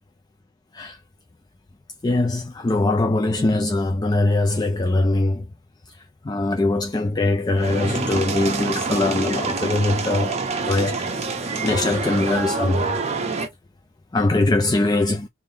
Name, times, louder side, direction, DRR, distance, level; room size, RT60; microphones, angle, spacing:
voice 1, 2.0-5.5 6.2-11.1 11.6-13.0 14.1-15.3, left 2 dB, 20° left, 0.4 m, -22 dB
sound 1, 7.6-13.5, right 4 dB, 35° right, 0.8 m, -26 dB
3.5 x 2.6 x 3.8 m
head